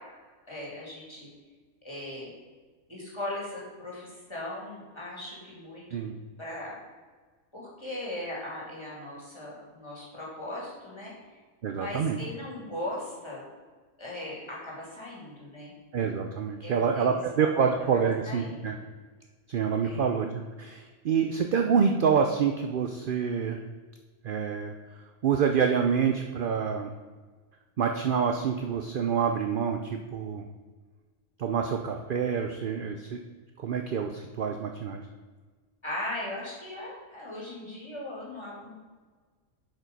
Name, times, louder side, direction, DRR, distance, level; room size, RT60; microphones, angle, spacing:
voice 1, 0.5-1.3 1.8-2.3 2.9-6.0 6.4-6.7 7.5-11.1 11.7-13.5 14.0-15.7 16.6-17.7 18.2-18.6 19.8-20.1 35.8-38.7, left 1 dB, 20° left, -6 dB, 2.5 m, -38 dB
voice 2, 11.6-12.2 15.9-18.8 19.5-23.6 24.2-24.7 25.2-26.9 27.8-30.4 31.4-33.2 33.6-35.0, right 6 dB, 60° right, 4 dB, 0.6 m, -27 dB
7.5 x 5.2 x 5.3 m, 1.4 s
omnidirectional pair, 1.4 m